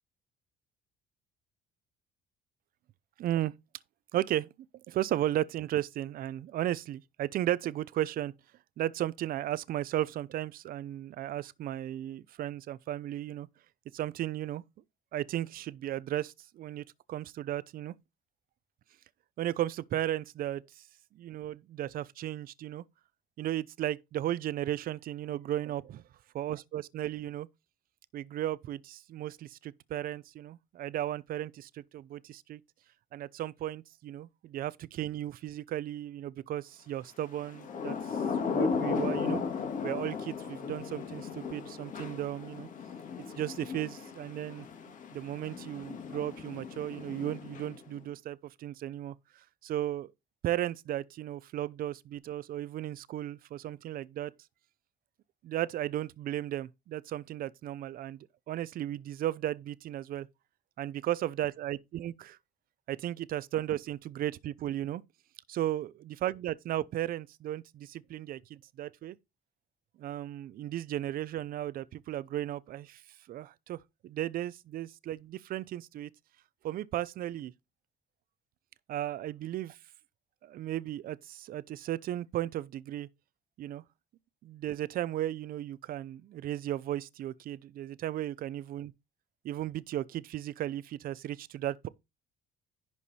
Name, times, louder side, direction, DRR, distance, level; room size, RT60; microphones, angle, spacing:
voice 1, 3.2-3.5 4.1-4.5 4.9-8.3 8.8-13.5 13.9-14.6 15.1-17.9 19.4-20.8 21.1-22.8 23.4-26.0 26.3-27.5 28.1-32.6 33.1-38.0 38.5-39.4 39.8-42.7 43.4-44.7 45.1-49.2 49.6-50.1 50.4-54.3 55.4-60.3 60.8-62.4 62.9-65.0 65.5-69.2 70.0-73.0 73.3-76.1 76.6-77.5 78.9-79.7 80.4-83.1 83.6-83.8 84.4-88.9 89.4-91.9, right 13 dB, 60° right, 0.6 m, -35 dB
Thunder / Rain, 37.4-48.0, left 5 dB, 50° left, 2.1 m, -36 dB
11.0 x 4.7 x 4.3 m
cardioid pair, 110°, 17 cm